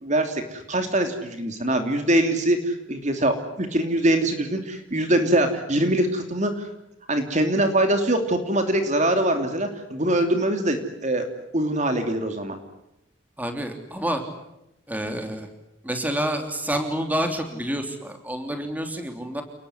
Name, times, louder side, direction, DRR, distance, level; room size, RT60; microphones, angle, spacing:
voice 1, 0.0-6.7 7.1-11.2 11.5-12.6, right 1 dB, 35° right, 6 dB, 2.8 m, -23 dB
voice 2, 13.4-14.2 14.9-15.5 15.8-19.4, right 1 dB, 10° right, 5 dB, 3.3 m, -28 dB
29.5 x 20.5 x 9.8 m, 0.87 s
head